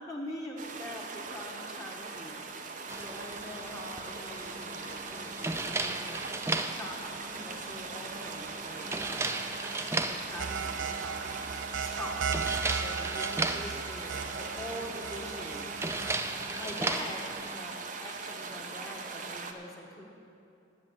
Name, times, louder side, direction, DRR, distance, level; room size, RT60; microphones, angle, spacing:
voice 1, 0.0-2.5 2.9-6.2 6.7-9.4 9.7-11.3 11.8-12.3 12.7-15.7 16.5-20.1, left 1 dB, 20° left, -2 dB, 1.3 m, -44 dB
sound 1, 0.6-19.5, right 4 dB, 40° right, 0.7 m, -40 dB
sound 2, 2.9-17.6, right 2 dB, 15° right, 0.4 m, -37 dB
sound 3, 10.4-16.2, right 6 dB, 75° right, 0.4 m, -36 dB
9.8 x 7.5 x 9.1 m, 2.7 s
head